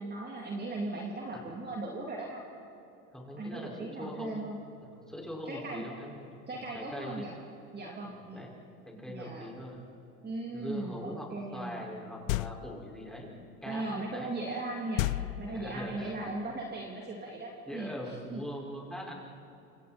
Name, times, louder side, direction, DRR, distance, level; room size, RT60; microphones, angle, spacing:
voice 1, 0.0-2.4 3.4-4.6 5.4-5.8 6.5-7.3 7.7-8.4 8.9-9.5 10.2-11.8 13.6-17.9 18.3-18.4, right 2 dB, 20° right, -2 dB, 3.3 m, -38 dB
voice 2, 3.1-7.3 8.0-8.6 8.8-9.9 10.5-14.3 15.5-16.2 17.7-19.3, equal, ahead, -3 dB, 5.9 m, -42 dB
sound 1, 12.3-12.9 15.0-16.0, left 18 dB, 60° left, 0.5 m, -33 dB
29.0 x 27.5 x 4.5 m, 2.8 s
hypercardioid pair, 95°, 45 cm